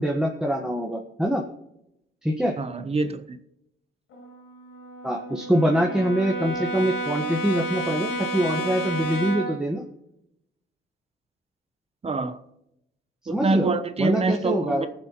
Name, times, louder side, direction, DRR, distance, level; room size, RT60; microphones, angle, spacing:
voice 1, 0.0-1.4 2.2-2.5 5.0-9.8 13.3-13.7 14.0-14.9, equal, 5° right, 1.4 m, -24 dB
voice 2, 2.6-3.4 12.0-12.4 13.3-14.9, right 3 dB, 30° right, 1.0 m, -25 dB
Brass instrument, 4.1-9.7, right 1 dB, 85° left, 1.8 m, -31 dB
20.0 x 7.2 x 3.0 m
cardioid pair, 90°, 20 cm